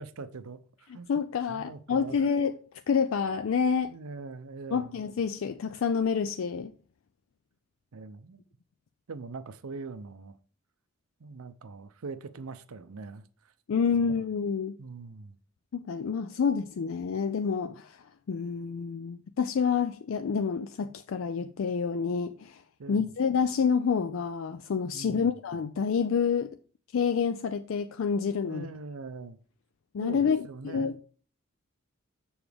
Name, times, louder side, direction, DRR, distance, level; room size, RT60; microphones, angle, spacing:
voice 1, 0.0-1.1 1.5-2.2 3.9-4.9 7.9-8.4 9.1-10.4 11.2-13.3 13.9-14.1 14.8-15.4 22.8-23.1 24.9-25.4 28.4-29.4 30.0-31.0, right 4 dB, 85° right, 0.6 m, -42 dB
voice 2, 0.9-2.6 2.9-3.9 4.7-6.7 13.7-14.8 15.7-22.6 22.9-26.5 26.9-28.7 29.9-31.0, left 6 dB, 65° left, 0.4 m, -28 dB
7.1 x 7.0 x 3.4 m
head